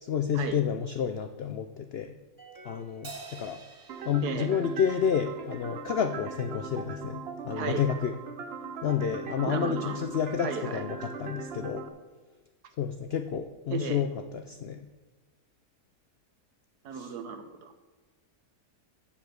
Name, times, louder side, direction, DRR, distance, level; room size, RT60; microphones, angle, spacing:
voice 1, 0.0-2.2 2.6-3.6 4.0-8.1 8.8-11.9 12.8-14.8 16.9-17.1, left 8 dB, 80° left, 8 dB, 0.5 m, -30 dB
sound 1, 2.4-4.1, right 4 dB, 10° right, 2.4 m, -54 dB
Crash cymbal, 3.0-5.7, right 3 dB, 40° right, 1.2 m, -48 dB
sound 2, 3.9-11.9, right 5 dB, 55° right, 0.7 m, -40 dB
voice 2, 9.4-10.0 10.4-10.8 13.7-14.0 16.8-17.7, right 5 dB, 75° right, 8 dB, 1.5 m, -34 dB
7.3 x 7.1 x 8.0 m, 1.3 s
omnidirectional pair, 1.7 m